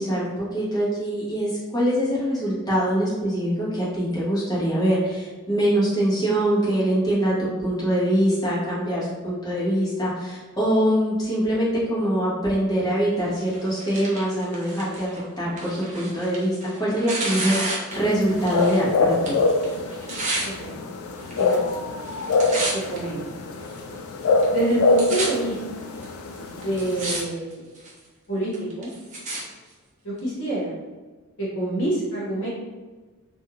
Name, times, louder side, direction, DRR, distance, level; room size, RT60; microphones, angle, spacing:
voice 1, 0.0-19.4, right 1 dB, 15° left, -8 dB, 0.9 m, -24 dB
Tearing, 13.4-18.9 19.1-20.5 21.2-21.7 22.0-23.0 23.6-23.7 24.4-24.5 24.7-25.3 26.0-26.1 26.6-27.2 27.5-28.0 28.5-29.4 30.2-30.3, right 2 dB, 35° right, 0.6 m, -31 dB
sound 1, 17.9-27.2, left 3 dB, 75° left, 0.3 m, -25 dB
voice 2, 20.4-20.8 21.4-21.6 22.7-23.3 24.5-25.9 26.5-27.6 28.3-28.9 30.0-30.7 31.4-32.5, right 1 dB, 60° left, -8 dB, 1.0 m, -27 dB
2.6 x 2.3 x 2.8 m, 1.3 s
head